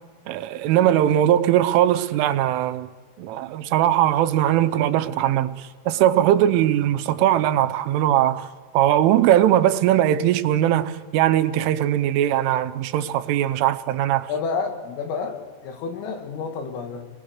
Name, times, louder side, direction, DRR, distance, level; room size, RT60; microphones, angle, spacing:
voice 1, 0.3-2.9 3.2-8.5 8.7-14.3, right 12 dB, 80° right, 3.3 m, -20 dB
voice 2, 14.3-17.1, left 5 dB, 90° left, 4.7 m, -30 dB
29.5 x 21.0 x 6.6 m
omnidirectional pair, 5.7 m